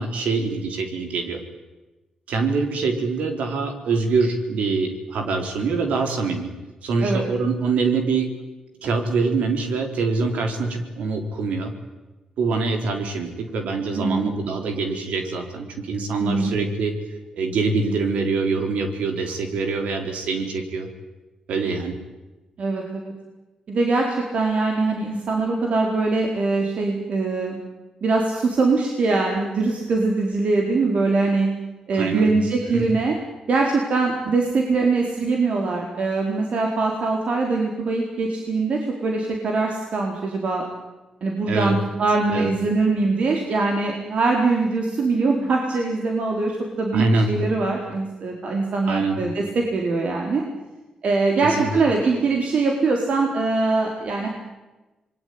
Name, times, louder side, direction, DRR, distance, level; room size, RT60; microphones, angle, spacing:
voice 1, 0.0-1.4 2.3-6.5 6.8-8.3 8.8-11.7 12.4-17.0 17.4-20.9 21.5-22.0 31.9-32.3 32.7-32.9 41.5-41.8 42.3-42.5 46.9-47.4 48.9-49.2 51.4-51.8, right 4 dB, 85° right, 5 dB, 4.2 m, -24 dB
voice 2, 13.9-14.3 16.2-16.5 22.6-23.1 23.7-27.6 28.0-31.5 31.9-33.1 33.5-40.6 41.2-50.4 51.0-54.3, right 3 dB, 70° right, 1 dB, 4.4 m, -22 dB
27.0 x 21.5 x 9.7 m, 1.1 s
cardioid pair, 65°, 2 cm